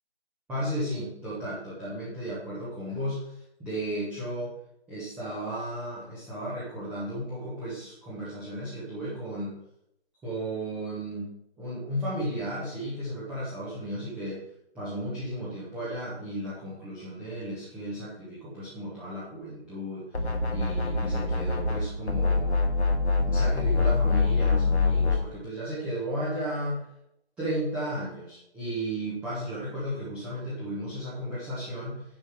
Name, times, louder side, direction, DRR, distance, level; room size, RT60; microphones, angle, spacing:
voice 1, 0.5-4.5 4.9-9.5 10.2-14.4 14.7-20.2 20.5-22.5 23.2-26.9 27.4-32.0, right 1 dB, 5° right, -9 dB, 1.1 m, -34 dB
sound 1, 20.1-21.8 22.1-25.2, left 3 dB, 80° left, 2.0 m, -24 dB
10.5 x 5.4 x 6.3 m, 0.79 s
figure-of-eight pair, 155°, 32 cm